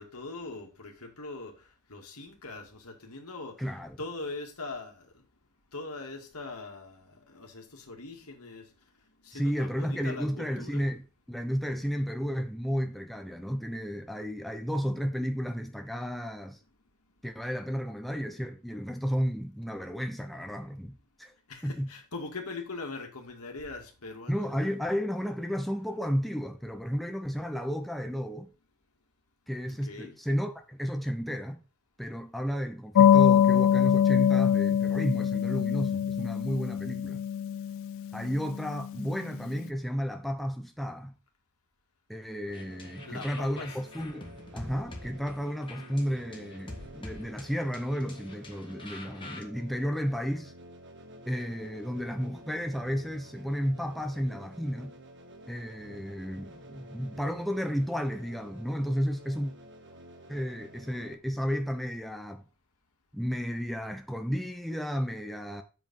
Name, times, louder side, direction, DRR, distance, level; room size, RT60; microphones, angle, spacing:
voice 1, 0.0-1.5 1.9-3.5 4.0-5.1 5.7-7.0 7.3-8.6 9.2-10.9 21.5-24.5 29.7-30.2 43.1-43.7, left 3 dB, 80° left, 2.2 m, -41 dB
voice 2, 3.6-4.0 9.3-11.0 11.3-16.6 17.2-21.3 21.6-21.9 24.3-28.5 29.5-31.6 32.0-37.2 38.1-41.1 42.1-50.5 51.3-54.9 55.5-59.5 60.3-62.5 63.1-65.6, equal, ahead, 0.7 m, -32 dB
sound 1, 32.9-39.1, left 9 dB, 60° left, 0.3 m, -24 dB
sound 2, 42.5-49.4, left 2 dB, 25° left, 1.6 m, -46 dB
sound 3, 42.5-61.1, right 1 dB, 55° right, 1.1 m, -50 dB
7.6 x 5.0 x 5.4 m
head